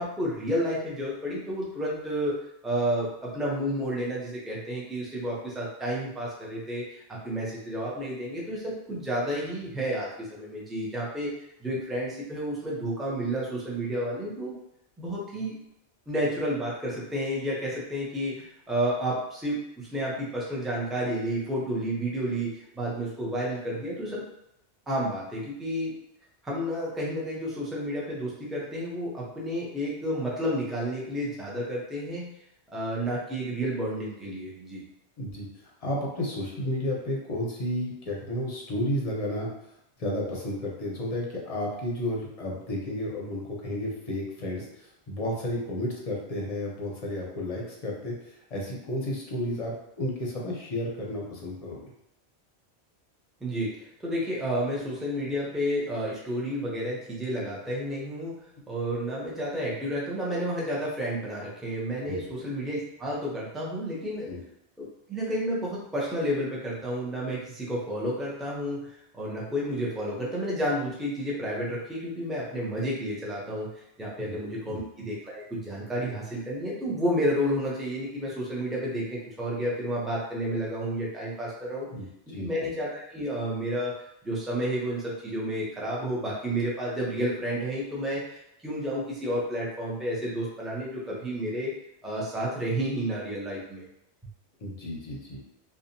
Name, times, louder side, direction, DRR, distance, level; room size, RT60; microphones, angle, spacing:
voice 1, 0.0-2.4 2.6-11.3 11.6-14.5 15.0-15.6 16.1-24.2 24.9-26.0 26.4-32.3 32.7-34.8 53.4-58.4 58.7-64.3 64.8-73.7 74.0-81.9 82.3-91.7 92.0-93.8, equal, ahead, -5 dB, 0.3 m, -31 dB
voice 2, 35.8-39.5 40.0-51.9 62.0-62.2 64.3-64.4 74.2-74.4 74.6-74.8 81.9-82.1 82.3-82.5 94.6-95.4, left 1 dB, 45° left, -2 dB, 0.6 m, -32 dB
2.7 x 2.3 x 2.6 m, 0.81 s
omnidirectional pair, 1.1 m